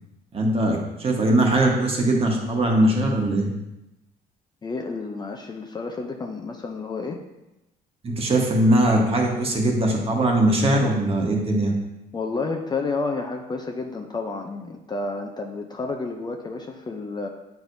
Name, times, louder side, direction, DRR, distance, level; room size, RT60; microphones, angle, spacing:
voice 1, 0.3-3.5 8.0-11.7, right 1 dB, 35° right, 0 dB, 1.3 m, -21 dB
voice 2, 4.6-7.2 12.1-17.3, left 3 dB, 25° left, 3 dB, 0.6 m, -30 dB
8.6 x 4.6 x 2.7 m, 0.95 s
cardioid pair, 110°, 17 cm